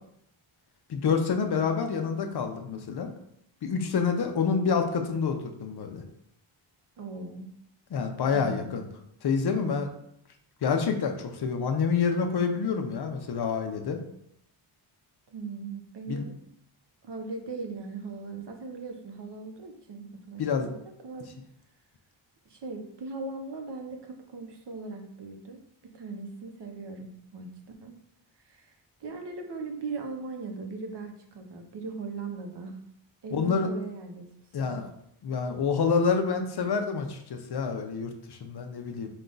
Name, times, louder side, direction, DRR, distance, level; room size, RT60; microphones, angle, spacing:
voice 1, 0.9-3.1 3.6-6.0 7.9-8.8 9.2-9.9 10.6-14.0 16.1-16.2 20.4-20.7 33.3-33.7 34.5-34.9 35.2-39.1, left 5 dB, 55° left, 5 dB, 0.5 m, -27 dB
voice 2, 7.0-7.5 8.3-8.7 15.3-16.3 17.0-21.3 22.5-27.5 27.8-28.0 28.4-28.7 29.0-32.8 33.2-34.3 34.6-34.8, right 3 dB, 60° right, 4 dB, 0.7 m, -39 dB
5.0 x 2.3 x 3.8 m, 0.73 s
wide cardioid pair, 180°, 49 cm